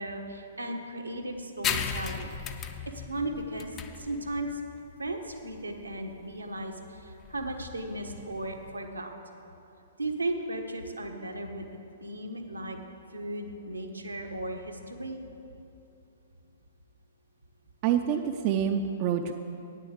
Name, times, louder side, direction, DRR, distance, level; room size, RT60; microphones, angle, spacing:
voice 1, 0.0-2.3 2.9-4.6 5.0-9.1 10.0-11.7 12.0-12.8 13.1-15.2, right 1 dB, 80° right, 3 dB, 1.0 m, -36 dB
sound 1, 1.6-8.8, left 7 dB, 25° left, 0.5 m, -37 dB
voice 2, 17.8-19.3, right 9 dB, 35° right, 6 dB, 0.4 m, -27 dB
9.2 x 6.7 x 7.6 m, 2.8 s
figure-of-eight pair, 115°, 0 cm